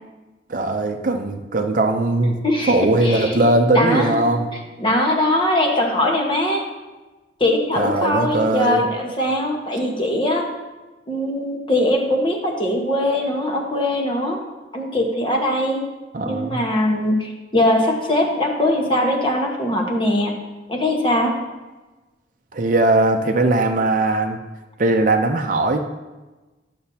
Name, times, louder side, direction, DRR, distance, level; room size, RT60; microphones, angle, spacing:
voice 1, 0.5-2.4 2.7-4.5 7.8-8.8 16.1-16.6 22.5-24.4 24.8-25.9, right 2 dB, 45° right, 4 dB, 0.6 m, -19 dB
voice 2, 2.4-3.5 3.7-4.2 4.5-6.6 7.4-10.5 11.1-14.4 14.7-15.8 16.2-20.3 20.7-21.3, left 1 dB, 30° left, 1 dB, 1.2 m, -21 dB
11.5 x 6.9 x 2.8 m, 1.2 s
head